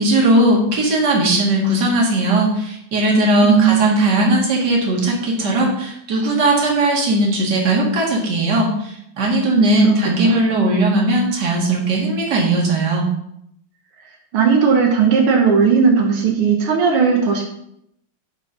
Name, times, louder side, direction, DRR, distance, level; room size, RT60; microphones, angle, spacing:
voice 1, 0.0-13.1, right 1 dB, 55° right, -2 dB, 2.5 m, -18 dB
voice 2, 3.4-4.1 9.5-9.9 10.2-10.4 14.3-17.5, right 6 dB, 85° right, 1 dB, 2.1 m, -16 dB
9.9 x 4.4 x 5.6 m, 0.75 s
omnidirectional pair, 2.3 m